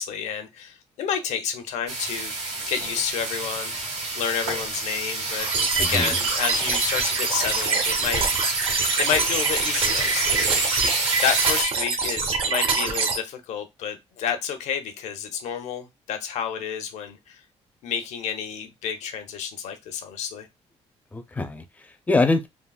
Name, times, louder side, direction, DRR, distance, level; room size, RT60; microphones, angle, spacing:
voice 1, 0.0-2.3 2.7-5.5 5.8-8.2 9.0-11.0 11.2-17.4 17.8-20.5, left 8 dB, 80° left, 0.6 m, -30 dB
sound 1, 1.9-11.6, right 2 dB, 85° right, 0.9 m, -29 dB
sound 2, 5.4-13.2, right 4 dB, 50° right, 0.7 m, -25 dB
voice 2, 5.8-6.2 21.1-22.5, left 2 dB, 15° left, 0.4 m, -24 dB
3.6 x 2.0 x 2.3 m
cardioid pair, 140°, 12 cm